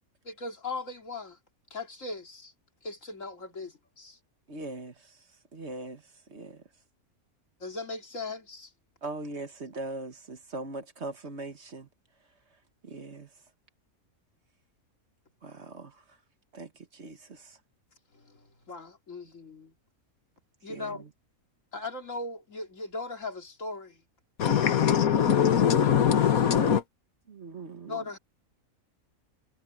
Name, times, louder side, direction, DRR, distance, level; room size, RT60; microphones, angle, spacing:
voice 1, 0.2-1.4 1.7-2.5 2.8-4.2 7.6-8.7 18.1-19.7 20.6-21.0 21.7-24.0 27.9-28.2, left 3 dB, 60° left, 3.0 m, -38 dB
voice 2, 4.5-5.2 5.5-6.0 6.3-6.6 9.0-11.9 12.8-13.3 15.4-16.0 16.5-17.6 20.7-21.1 27.3-28.0, right 2 dB, 50° right, 1.7 m, -40 dB
voice 3, 24.4-26.8, left 8 dB, 80° left, 1.7 m, -22 dB
omnidirectional pair, 1.5 m